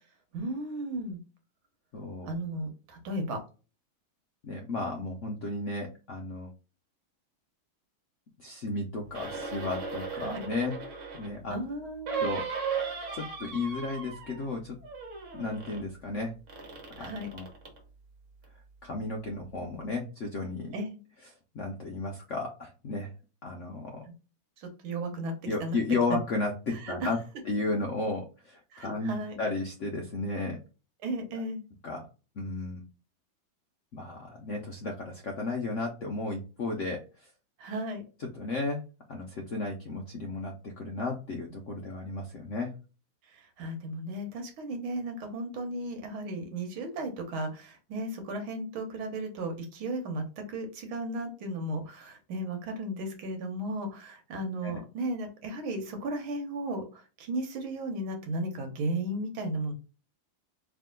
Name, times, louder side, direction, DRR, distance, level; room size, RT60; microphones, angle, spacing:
voice 1, 0.3-1.2 2.3-3.4 10.2-10.4 11.5-12.4 17.0-17.3 20.7-21.0 24.6-25.3 25.6-25.8 26.8-26.9 28.7-29.4 31.0-31.6 37.6-38.0 43.6-59.7, right 1 dB, 85° right, 5 dB, 1.9 m, -35 dB
voice 2, 1.9-2.3 4.4-6.5 8.4-10.8 11.1-11.6 12.2-12.5 13.1-14.8 15.3-16.3 17.0-17.4 18.8-20.7 21.5-23.1 23.4-24.0 25.5-27.2 27.4-30.6 31.3-31.4 31.8-32.1 32.4-32.9 33.9-37.0 38.3-38.8 39.1-42.7 54.6-54.8, left 3 dB, 75° left, 0 dB, 0.6 m, -33 dB
sound 1, 9.1-11.4 12.1-14.5 14.8-15.8 16.5-17.8 18.4-18.5, right 5 dB, 45° right, 1.2 m, -37 dB
3.6 x 2.8 x 3.7 m, 0.33 s
omnidirectional pair, 2.2 m